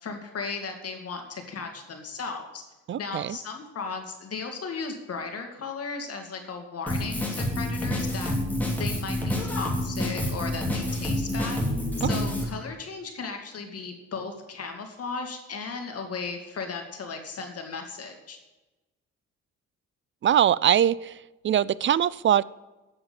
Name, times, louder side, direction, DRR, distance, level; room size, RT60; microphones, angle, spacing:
voice 1, 0.0-2.6 3.0-8.3 8.8-11.6 12.0-18.4, left 4 dB, 50° left, 4 dB, 2.3 m, -36 dB
voice 2, 2.9-3.4 20.2-21.2 21.4-22.4, right 10 dB, 40° right, 21 dB, 0.4 m, -22 dB
Drum kit, 6.9-12.4, left 1 dB, 5° left, 2.8 m, -28 dB
8.8 x 7.3 x 8.6 m, 1.1 s
cardioid pair, 90°, 30 cm